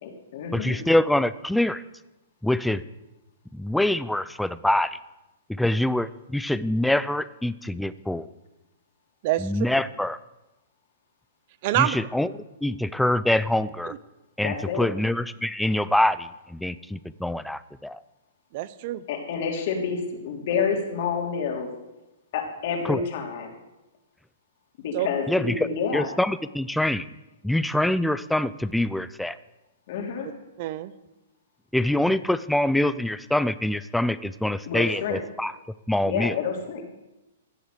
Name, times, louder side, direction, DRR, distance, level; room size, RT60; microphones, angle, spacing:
voice 1, 0.0-0.8 14.4-14.9 19.1-21.7 22.3-23.5 24.8-26.1 29.9-30.3 34.6-35.2 36.0-36.8, left 6 dB, 55° left, 2 dB, 3.3 m, -28 dB
voice 2, 0.5-1.8 2.4-2.8 3.5-5.0 5.5-8.3 9.4-10.2 11.7-12.3 12.6-13.9 14.4-18.0 22.8-23.0 25.3-25.7 25.9-27.1 27.4-29.4 31.7-35.5 35.9-36.4, left 1 dB, 5° left, 15 dB, 0.5 m, -25 dB
voice 3, 9.2-9.7 11.6-12.0 18.5-19.0 24.9-25.1 30.6-30.9, right 15 dB, 45° right, 16 dB, 0.8 m, -26 dB
15.5 x 8.0 x 6.8 m, 0.99 s
hypercardioid pair, 135°, 0 cm